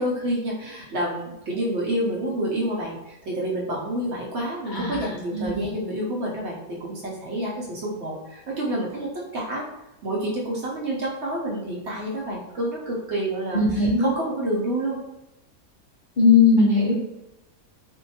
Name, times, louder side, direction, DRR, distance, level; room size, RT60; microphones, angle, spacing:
voice 1, 0.0-9.7 10.0-15.0, right 1 dB, 60° right, -4 dB, 0.8 m, -28 dB
voice 2, 4.7-5.7 13.5-14.1 16.2-16.9, left 4 dB, 70° left, -6 dB, 0.4 m, -19 dB
2.6 x 2.2 x 2.6 m, 0.94 s
omnidirectional pair, 1.5 m